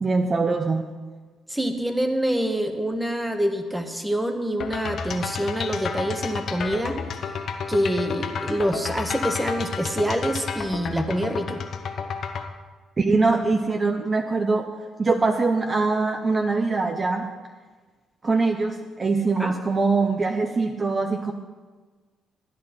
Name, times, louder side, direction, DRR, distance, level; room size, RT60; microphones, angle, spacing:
voice 1, 0.0-0.9 13.0-14.7 15.0-17.3 18.2-21.3, right 3 dB, 30° right, 5 dB, 0.7 m, -23 dB
voice 2, 1.5-7.0 7.7-11.6 19.4-19.5, equal, 10° right, 7 dB, 1.1 m, -26 dB
sound 1, 4.6-12.5, left 5 dB, 60° left, 0.9 m, -31 dB
13.0 x 9.5 x 4.3 m, 1.4 s
cardioid pair, 90°, 0 cm